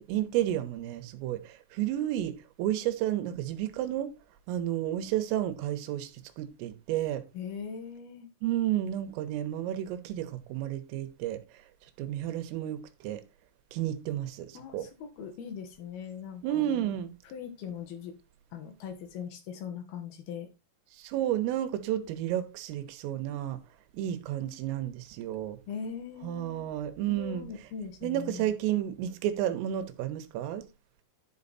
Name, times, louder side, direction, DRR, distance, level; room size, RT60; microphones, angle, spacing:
voice 1, 0.1-2.3 2.6-4.1 4.5-6.1 6.4-7.2 8.4-11.4 12.0-13.2 13.7-14.9 16.4-17.1 20.9-23.6 23.9-25.6 26.2-27.5 28.0-30.7, right 12 dB, 85° right, 3.7 m, -31 dB
voice 2, 7.3-8.3 14.5-16.9 17.2-18.1 18.5-20.5 25.7-26.6 27.1-28.5, left 7 dB, 60° left, 2.9 m, -41 dB
11.5 x 5.4 x 4.1 m
omnidirectional pair, 5.8 m